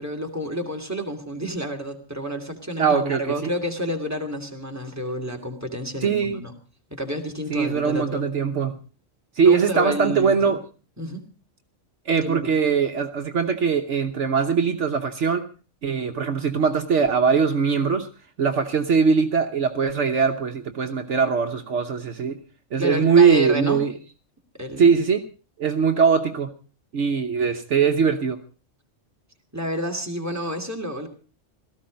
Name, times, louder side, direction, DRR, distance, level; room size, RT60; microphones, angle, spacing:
voice 1, 0.0-6.5 6.9-8.2 9.4-10.5 11.0-11.2 12.1-12.5 22.8-23.8 24.6-24.8 29.5-31.1, equal, 10° right, 2 dB, 2.6 m, -29 dB
voice 2, 2.8-3.5 6.0-6.4 7.5-8.8 9.4-10.6 12.1-15.4 15.8-18.1 18.4-22.4 22.7-23.9 24.8-25.2 25.6-26.5 26.9-28.4, right 6 dB, 65° right, 6 dB, 1.3 m, -21 dB
17.5 x 14.0 x 5.2 m, 0.36 s
omnidirectional pair, 1.3 m